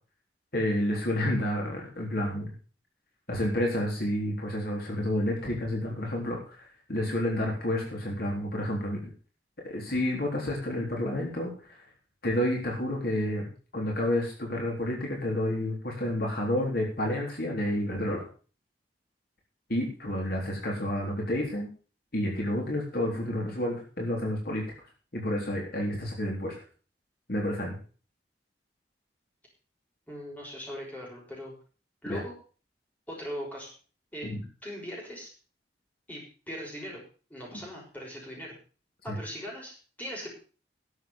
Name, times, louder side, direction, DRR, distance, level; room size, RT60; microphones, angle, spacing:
voice 1, 0.5-2.5 3.3-9.0 9.6-11.8 12.2-18.3 19.7-21.7 22.1-24.6 25.1-26.5 27.3-27.8 32.1-32.2 34.2-34.4 39.1-39.2, left 1 dB, 60° left, -1 dB, 3.7 m, -30 dB
voice 2, 30.1-31.5 32.0-32.3 33.1-33.7 34.1-34.3 34.6-35.3 36.1-37.0 37.3-38.5 39.0-40.3, equal, 10° left, -3 dB, 6.1 m, -39 dB
12.0 x 7.8 x 7.1 m, 0.39 s
head